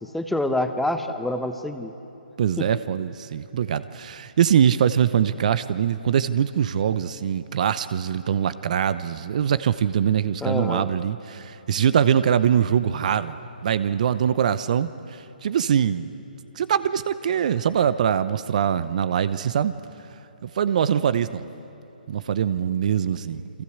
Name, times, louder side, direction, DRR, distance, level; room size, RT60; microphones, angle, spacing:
voice 1, 0.0-1.9 2.6-2.7 10.4-10.9, left 1 dB, 5° left, 7 dB, 1.1 m, -27 dB
voice 2, 2.4-13.4 13.6-16.1 16.5-19.7 20.4-21.5 22.1-23.6, right 8 dB, 50° right, 14 dB, 0.8 m, -23 dB
29.0 x 23.5 x 8.1 m, 2.9 s
figure-of-eight pair, 140°, 5 cm